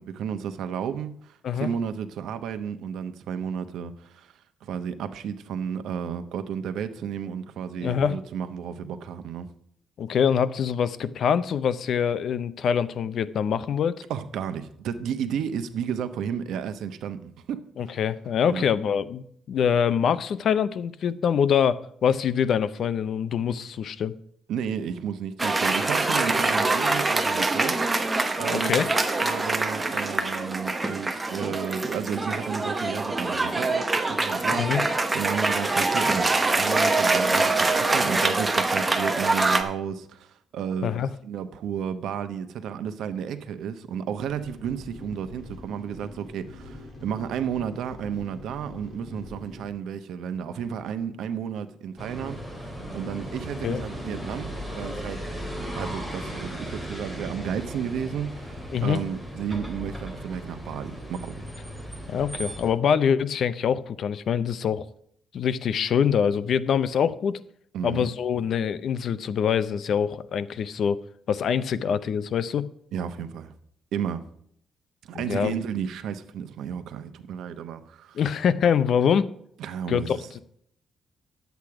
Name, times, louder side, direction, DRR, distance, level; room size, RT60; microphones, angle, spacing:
voice 1, 0.0-4.3 4.6-9.5 14.1-17.6 18.5-18.7 24.5-28.8 29.2-34.8 35.1-55.2 55.7-61.4 67.7-68.1 72.9-73.5 73.9-74.2 75.0-78.2 79.6-80.3, right 8 dB, 85° right, 0.9 m, -32 dB
voice 2, 7.8-8.2 10.0-14.0 17.8-24.1 28.5-28.9 34.6-34.8 40.8-41.1 53.6-53.8 58.7-59.0 62.1-64.9 65.3-67.4 67.8-72.7 75.1-75.5 78.1-79.3 79.9-80.4, left 7 dB, 60° left, 0.6 m, -24 dB
Cheering / Applause, 25.4-39.6, right 2 dB, 15° right, 1.0 m, -24 dB
sound 1, 44.2-49.7, left 1 dB, 20° left, 5.2 m, -44 dB
sound 2, 52.0-62.7, equal, 5° left, 2.4 m, -36 dB
10.5 x 8.2 x 4.8 m
cardioid pair, 145°, 0 cm